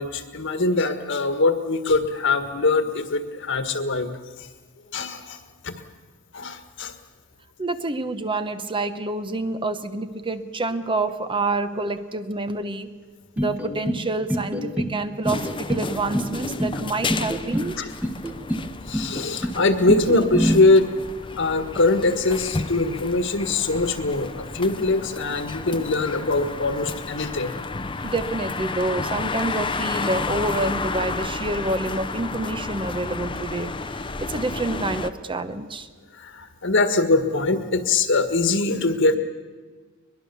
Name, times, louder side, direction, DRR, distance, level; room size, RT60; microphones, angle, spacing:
voice 1, 0.0-4.1 4.4-4.5 4.9-5.4 5.6-5.7 6.3-6.9 17.8-17.9 18.9-20.9 21.4-27.5 36.2-39.2, left 3 dB, 60° left, 8 dB, 1.7 m, -22 dB
voice 2, 7.6-13.0 13.4-17.8 28.0-35.9, right 2 dB, 25° right, 10 dB, 0.9 m, -28 dB
sound 1, 13.4-14.0 14.3-14.9 15.2-15.9 16.1-16.8 17.1-17.7 18.0-18.6 18.9-19.6 19.9-20.5, equal, 5° right, 1.4 m, -25 dB
sound 2, 15.2-35.1, left 3 dB, 25° left, 0.8 m, -32 dB
22.0 x 22.0 x 7.0 m, 1.5 s
head